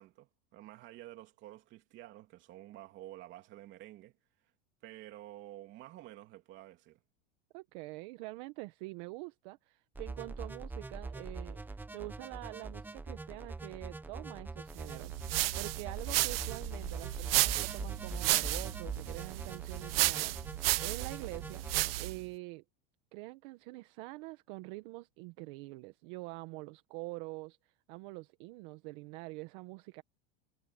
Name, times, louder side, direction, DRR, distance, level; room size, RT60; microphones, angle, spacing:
voice 1, 0.0-4.1 4.8-7.0, right 15 dB, 40° right, 3.0 m, -50 dB
voice 2, 7.5-22.6 23.1-30.0, right 23 dB, 60° right, 1.2 m, -45 dB
sound 1, 10.0-21.9, right 3 dB, 5° right, 1.1 m, -43 dB
sound 2, 14.9-22.2, right 18 dB, 85° right, 0.9 m, -33 dB
supercardioid pair, 150°, 29 cm